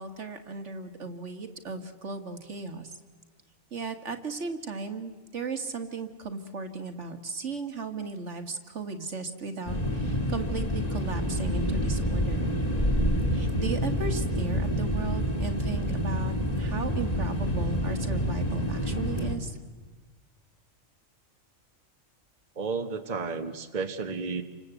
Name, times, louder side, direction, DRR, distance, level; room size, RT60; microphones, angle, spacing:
voice 1, 0.0-2.9 3.7-12.5 13.3-19.6, right 4 dB, 60° right, 6 dB, 2.1 m, -36 dB
sound 1, 9.7-19.4, equal, 30° left, 3.0 m, -28 dB
voice 2, 22.6-24.4, right 4 dB, 35° right, 6 dB, 1.3 m, -32 dB
29.0 x 25.0 x 8.1 m, 1.3 s
omnidirectional pair, 1.4 m